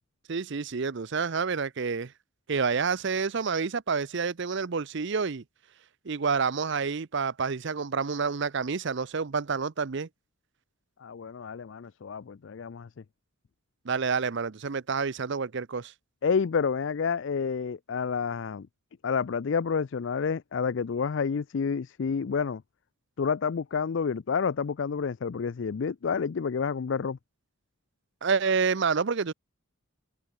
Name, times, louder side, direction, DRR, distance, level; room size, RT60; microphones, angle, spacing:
voice 1, 0.3-2.1 2.5-5.4 6.1-10.1 13.9-15.9 28.2-29.3, right 5 dB, 55° right, 0.6 m, -28 dB
voice 2, 11.0-12.9 16.2-18.7 19.0-22.6 23.2-27.2, left 6 dB, 55° left, 0.4 m, -29 dB
head